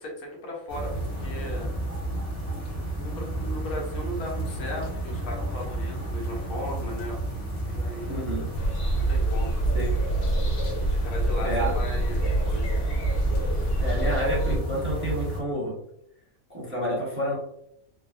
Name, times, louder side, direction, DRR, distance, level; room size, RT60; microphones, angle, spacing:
voice 1, 0.0-1.7 2.7-7.2 7.7-8.3 8.9-9.6 10.9-12.8, left 1 dB, 90° left, -1 dB, 1.3 m, -37 dB
sound 1, 0.7-15.4, right 1 dB, 35° left, 0.8 m, -31 dB
voice 2, 8.1-8.5 9.7-9.9 11.4-11.7 13.8-15.7 16.5-17.3, equal, 10° right, -6 dB, 0.8 m, -29 dB
sound 2, 8.5-14.6, right 1 dB, 65° left, 1.0 m, -26 dB
3.4 x 2.0 x 2.4 m, 0.74 s
omnidirectional pair, 1.5 m